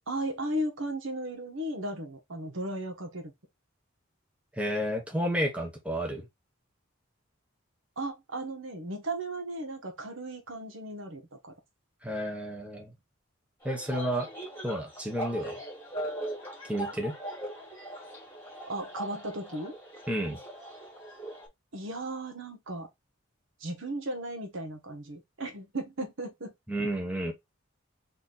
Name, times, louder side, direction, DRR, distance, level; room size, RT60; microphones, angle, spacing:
voice 1, 0.1-3.3 8.0-11.5 18.6-19.7 21.7-22.9 23.6-26.5, right 1 dB, 65° right, 1.3 m, -36 dB
voice 2, 4.5-6.3 12.0-12.9 13.6-14.3 14.6-15.6 16.7-17.2 20.1-20.4 26.7-27.3, equal, 5° right, 0.9 m, -31 dB
sound 1, 13.6-21.5, right 1 dB, 10° left, 1.7 m, -40 dB
4.1 x 2.8 x 3.9 m
head